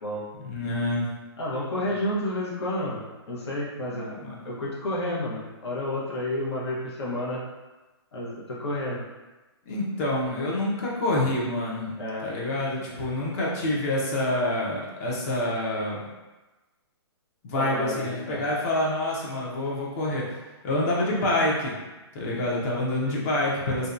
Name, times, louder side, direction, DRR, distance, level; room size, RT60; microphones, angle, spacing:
voice 1, 0.4-1.1 3.9-4.4 9.7-11.9 12.2-16.1 17.4-20.2 20.6-21.7 22.1-23.9, left 1 dB, 35° left, -4 dB, 0.6 m, -27 dB
voice 2, 1.4-4.2 4.4-7.4 8.1-9.0 12.0-12.3 12.9-13.0 17.5-18.4 23.1-23.3, left 1 dB, 75° left, -5 dB, 0.9 m, -31 dB
2.6 x 2.2 x 2.5 m, 1.1 s
hypercardioid pair, 155°, 14 cm